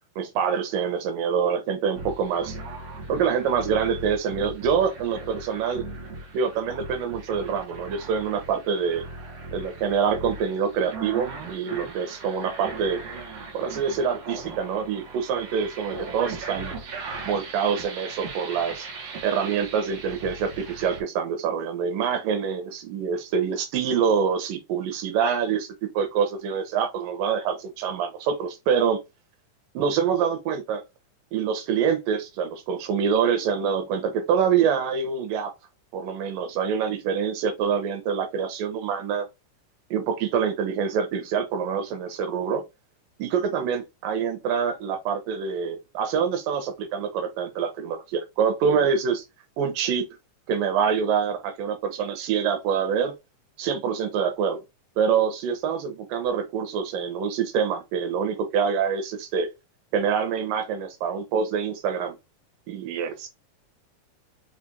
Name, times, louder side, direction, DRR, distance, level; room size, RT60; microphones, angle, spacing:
voice 1, 0.2-2.6 3.1-5.8 6.3-9.0 9.5-13.0 13.5-16.7 17.2-18.9 19.2-29.0 29.7-30.8 31.3-35.5 35.9-39.3 39.9-42.6 43.2-49.2 49.6-50.0 50.5-53.1 53.6-54.6 55.0-59.5 59.9-62.2 62.7-63.3, right 7 dB, 90° right, 2.6 m, -25 dB
sound 1, 2.0-21.0, right 3 dB, 60° right, 2.1 m, -39 dB
5.9 x 2.5 x 2.6 m
omnidirectional pair, 3.7 m